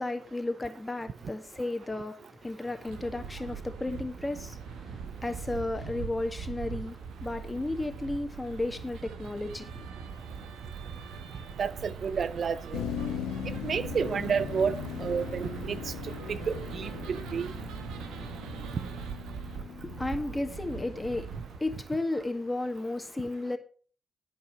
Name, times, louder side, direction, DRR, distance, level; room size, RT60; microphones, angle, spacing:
voice 1, 0.0-9.8 19.5-23.6, left 2 dB, 25° left, 1.9 m, -34 dB
sound 1, 2.9-21.6, right 6 dB, 85° right, 1.2 m, -41 dB
voice 2, 11.6-12.8 13.5-17.5, right 6 dB, 65° right, 0.6 m, -31 dB
Motor vehicle (road), 12.7-21.7, left 9 dB, 85° left, 1.0 m, -40 dB
12.0 x 5.5 x 6.0 m
supercardioid pair, 45°, 0 cm